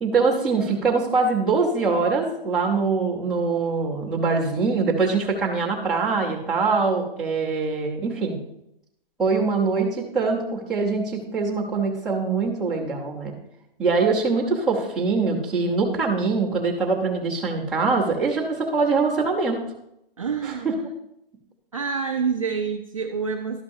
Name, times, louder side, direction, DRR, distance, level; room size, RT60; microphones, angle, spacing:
voice 1, 0.0-8.4 9.2-13.3 13.8-19.6 20.4-20.7, right 4 dB, ahead, -11 dB, 0.8 m, -23 dB
voice 2, 20.2-20.8 21.7-23.6, right 6 dB, 35° right, 3 dB, 0.4 m, -27 dB
12.0 x 5.9 x 2.7 m, 0.82 s
hypercardioid pair, 170°, 29 cm